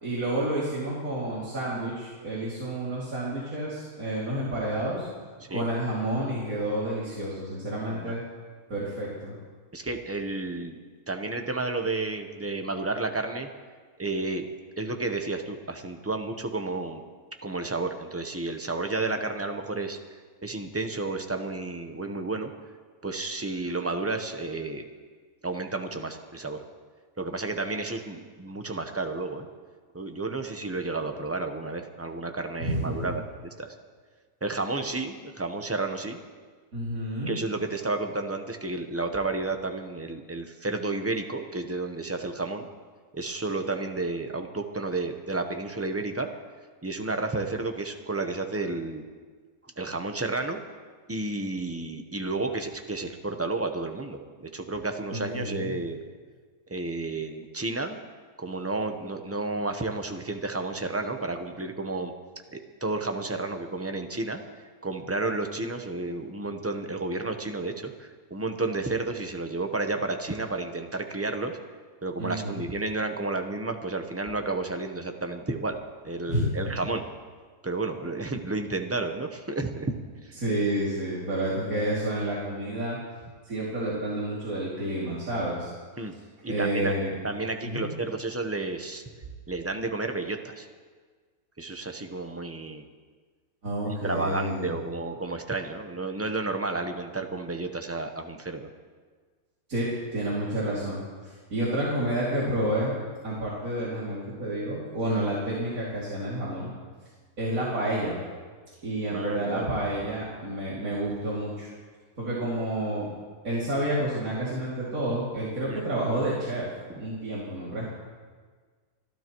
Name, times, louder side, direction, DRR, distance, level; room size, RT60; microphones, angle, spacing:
voice 1, 0.0-5.1 5.5-8.2 8.7-9.4 32.6-33.0 36.7-37.4 55.1-55.7 72.2-72.6 76.3-76.5 80.4-83.0 83.5-85.7 86.5-87.1 87.6-87.9 93.6-94.7 99.7-102.9 103.2-106.7 107.4-108.2 108.8-111.7 112.2-113.1 113.4-116.6 117.0-117.9, right 1 dB, 65° right, -7 dB, 3.1 m, -29 dB
voice 2, 9.7-10.8 11.1-13.5 14.0-14.5 14.8-17.0 17.4-20.0 20.4-22.5 23.0-24.8 25.4-26.6 27.2-29.5 29.9-33.7 34.4-36.2 37.3-42.7 43.1-46.3 46.8-49.0 49.8-50.6 51.1-54.2 54.5-56.0 56.7-58.0 58.4-62.1 62.5-64.4 64.8-71.6 72.0-75.8 76.0-77.0 77.6-79.9 80.2-80.3 86.0-86.1 86.4-86.9 87.2-89.0 89.5-90.7 91.6-92.8 93.8-98.7 109.1-109.7 115.7-115.8, right 3 dB, 15° right, 5 dB, 0.6 m, -31 dB
29.0 x 12.5 x 3.1 m, 1.5 s
omnidirectional pair, 1.6 m